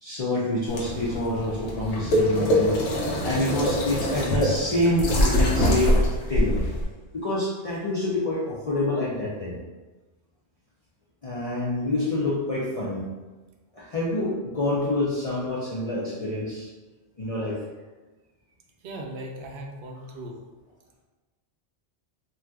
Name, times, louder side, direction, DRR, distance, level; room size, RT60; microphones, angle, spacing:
voice 1, 0.0-6.0 6.3-6.6 7.1-9.6 11.2-13.0 13.7-16.7 17.2-17.6, left 2 dB, 45° left, -7 dB, 0.5 m, -27 dB
sound 1, 0.7-6.8, equal, 85° left, 0.9 m, -24 dB
voice 2, 18.8-20.4, right 1 dB, 60° right, 1 dB, 0.6 m, -38 dB
2.6 x 2.3 x 3.4 m, 1.2 s
omnidirectional pair, 1.1 m